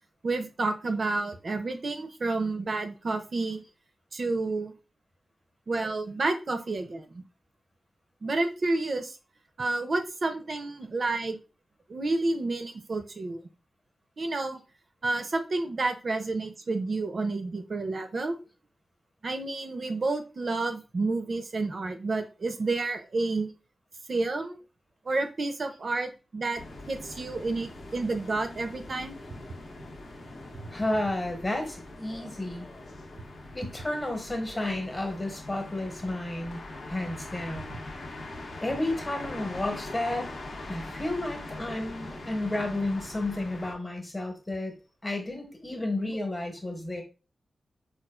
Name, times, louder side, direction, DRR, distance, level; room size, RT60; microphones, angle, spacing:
voice 1, 0.2-3.6 4.1-4.7 5.7-7.2 8.2-9.2 9.6-11.4 11.9-13.4 14.2-14.6 15.0-18.4 19.2-23.5 24.1-24.6 25.1-26.6 26.9-29.2 46.1-46.2, right 3 dB, 50° right, 7 dB, 0.4 m, -30 dB
sound 1, 26.5-43.7, left 2 dB, 70° left, 0.7 m, -42 dB
voice 2, 30.7-32.7 33.5-37.8 38.6-40.3 40.7-44.7 45.0-47.0, left 1 dB, 25° left, 3 dB, 0.9 m, -32 dB
4.2 x 2.3 x 2.2 m, 0.32 s
wide cardioid pair, 110°, 0 cm